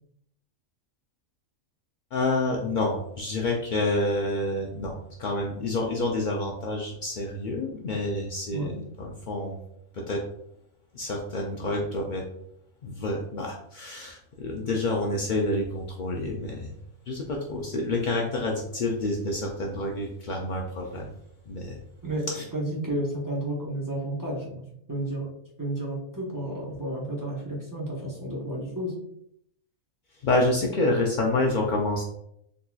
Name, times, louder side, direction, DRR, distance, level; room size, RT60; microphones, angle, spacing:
voice 1, 2.1-9.6 9.9-10.2 10.9-12.2 12.8-16.7 17.1-21.1 21.5-21.8 22.3-22.4 30.2-32.0, left 2 dB, 85° left, 0 dB, 0.4 m, -28 dB
voice 2, 22.0-25.3 25.6-28.9, right 1 dB, 20° right, -6 dB, 0.7 m, -32 dB
3.9 x 2.9 x 2.3 m, 0.74 s
omnidirectional pair, 1.4 m